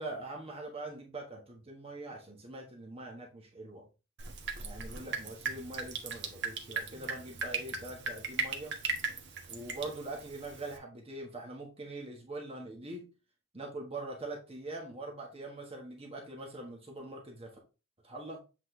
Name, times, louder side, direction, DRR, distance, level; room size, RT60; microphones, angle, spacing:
voice 1, 0.0-3.9 4.6-8.8 9.5-13.1 13.5-17.5 18.0-18.4, right 2 dB, 30° right, -1 dB, 1.3 m, -43 dB
Drip, 4.2-10.8, right 5 dB, 60° right, 1.3 m, -38 dB
8.0 x 4.4 x 3.1 m, 0.31 s
head